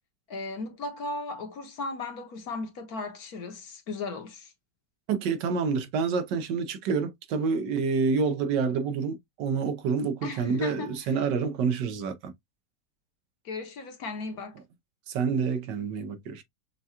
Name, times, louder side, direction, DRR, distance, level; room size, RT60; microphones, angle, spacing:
voice 1, 0.3-4.5 10.2-11.1 13.4-14.6, left 3 dB, 60° left, 1.3 m, -36 dB
voice 2, 5.1-12.3 15.1-16.4, right 5 dB, 80° right, 1.4 m, -28 dB
5.9 x 2.3 x 2.8 m
omnidirectional pair, 1.9 m